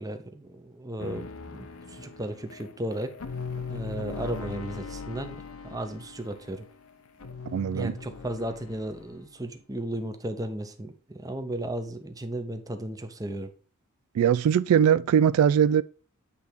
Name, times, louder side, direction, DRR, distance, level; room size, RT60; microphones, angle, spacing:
voice 1, 0.0-3.2 3.7-6.7 7.7-13.5, right 1 dB, 15° right, 0.8 m, -35 dB
sound 1, 1.0-9.2, left 5 dB, 75° left, 0.7 m, -40 dB
voice 2, 7.5-7.9 14.2-15.8, right 8 dB, 85° right, 0.3 m, -21 dB
8.5 x 3.5 x 4.4 m
head